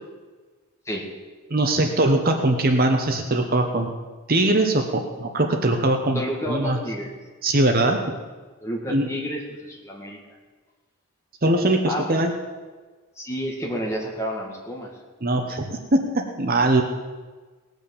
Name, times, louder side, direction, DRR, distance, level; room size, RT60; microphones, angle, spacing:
voice 1, 1.5-3.9 4.3-6.8 7.4-8.0 8.9-9.1 11.4-12.3 15.2-16.8, right 2 dB, 40° right, 4 dB, 1.0 m, -21 dB
voice 2, 6.1-7.1 8.6-10.2 11.9-12.1 13.2-14.9, equal, 15° left, -1 dB, 2.0 m, -30 dB
18.5 x 6.3 x 7.1 m, 1.4 s
head